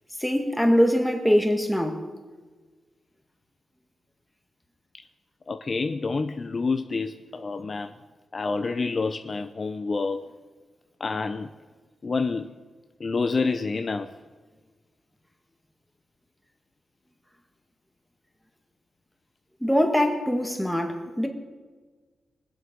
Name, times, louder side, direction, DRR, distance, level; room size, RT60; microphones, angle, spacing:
voice 1, 0.2-2.1 19.6-21.3, equal, ahead, 1.8 m, -22 dB
voice 2, 5.5-7.9 8.3-10.3 11.0-11.5 12.0-12.5 13.0-14.1, left 4 dB, 45° left, 0.6 m, -28 dB
22.0 x 7.8 x 5.2 m
cardioid pair, 90°, 0 cm